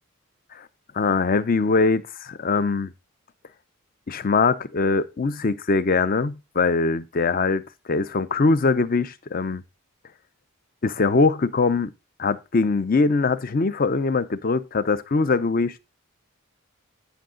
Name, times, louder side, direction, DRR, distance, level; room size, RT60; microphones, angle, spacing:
voice 1, 0.9-2.9 4.1-7.6 7.9-9.6 10.8-11.9 12.2-15.8, left 4 dB, 40° left, 0.5 m, -22 dB
10.5 x 5.6 x 3.8 m
head